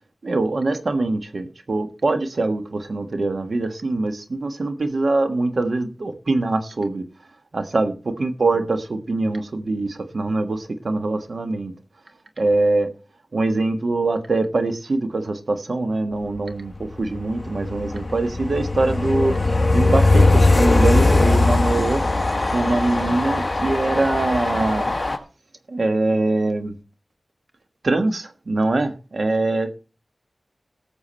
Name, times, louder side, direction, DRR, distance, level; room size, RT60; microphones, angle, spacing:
voice 1, 0.2-7.0 7.5-11.7 12.4-12.9 13.3-19.4 19.7-22.0 22.5-24.9 25.7-26.7 27.8-29.7, right 2 dB, 60° right, 7 dB, 1.4 m, -23 dB
Train, 16.7-25.2, left 2 dB, 30° left, 1.6 m, -20 dB
18.0 x 6.9 x 4.3 m, 0.36 s
wide cardioid pair, 95°, 0 cm